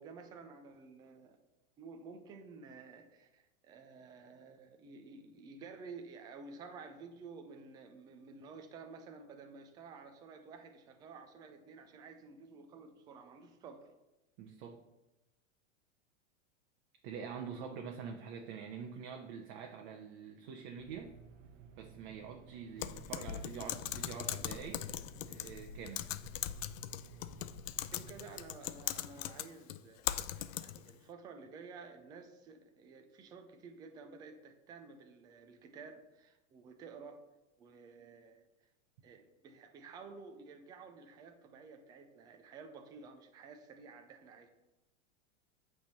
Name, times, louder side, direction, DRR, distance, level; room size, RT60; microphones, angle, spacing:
voice 1, 0.0-1.4 1.8-13.9 27.9-37.2 37.6-38.5 39.0-44.5, right 4 dB, 10° right, 5 dB, 0.3 m, -52 dB
voice 2, 14.4-14.8 17.0-21.1 21.8-24.9 25.3-26.1, right 6 dB, 45° right, 3 dB, 0.9 m, -45 dB
sound 1, 20.8-28.3, right 6 dB, 85° right, 1.1 m, -57 dB
Typing, 22.8-30.9, left 12 dB, 85° left, 0.6 m, -40 dB
9.0 x 3.5 x 6.7 m, 1.0 s
supercardioid pair, 150°, 37 cm